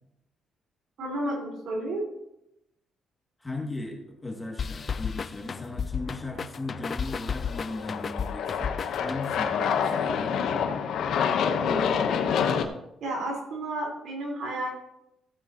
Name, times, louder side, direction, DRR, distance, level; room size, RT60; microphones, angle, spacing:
voice 1, 1.0-2.0 11.5-12.1 13.0-14.7, right 1 dB, 75° right, -1 dB, 4.3 m, -32 dB
voice 2, 3.4-10.4, left 2 dB, 20° left, 0 dB, 2.3 m, -37 dB
sound 1, 4.6-9.5, left 6 dB, 45° left, 0.4 m, -34 dB
Aircraft, 7.0-12.6, left 7 dB, 75° left, 1.0 m, -27 dB
15.0 x 8.2 x 3.0 m, 0.84 s
cardioid pair, 90°, 0 cm